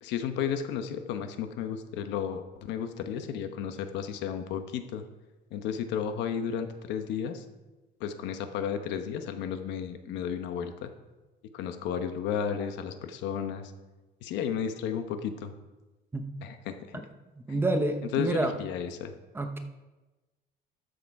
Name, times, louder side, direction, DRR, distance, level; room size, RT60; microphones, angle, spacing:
voice 1, 0.0-5.0 5.5-7.4 8.0-10.9 11.5-13.7 14.2-15.5 16.4-17.0 17.5-17.6 18.1-19.1, left 8 dB, 85° left, 8 dB, 1.1 m, -33 dB
voice 2, 17.4-18.5 19.3-19.6, right 2 dB, 10° right, 6 dB, 0.8 m, -28 dB
13.0 x 6.8 x 4.8 m, 1.1 s
cardioid pair, 155°, 18 cm